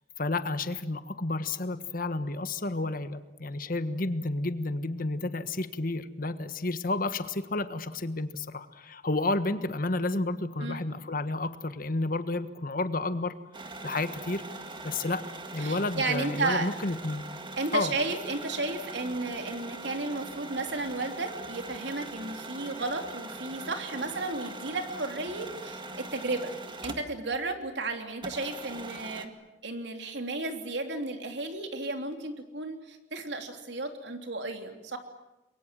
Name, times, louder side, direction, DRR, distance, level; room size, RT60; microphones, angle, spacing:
voice 1, 0.2-13.3 13.8-14.4 14.8-15.2 15.5-17.3 17.7-17.9, left 2 dB, 55° left, 11 dB, 1.4 m, -31 dB
sound 1, 13.5-27.3 27.6-27.7 28.2-29.3, right 2 dB, 30° right, 2.0 m, -42 dB
voice 2, 15.6-16.7 17.6-26.5 26.8-29.3 29.6-35.0, right 3 dB, 85° right, 5 dB, 3.2 m, -33 dB
29.0 x 22.5 x 7.6 m, 1.0 s
head